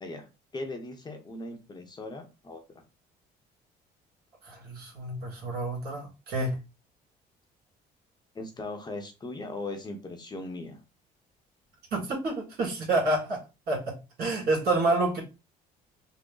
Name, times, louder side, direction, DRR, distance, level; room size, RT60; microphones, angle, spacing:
voice 1, 0.0-2.8 8.3-10.8, left 2 dB, 25° left, 0.8 m, -39 dB
voice 2, 4.4-6.6 11.9-13.4 13.7-15.2, right 2 dB, 65° right, 2.2 m, -28 dB
3.7 x 2.1 x 3.8 m
cardioid pair, 110°, 17 cm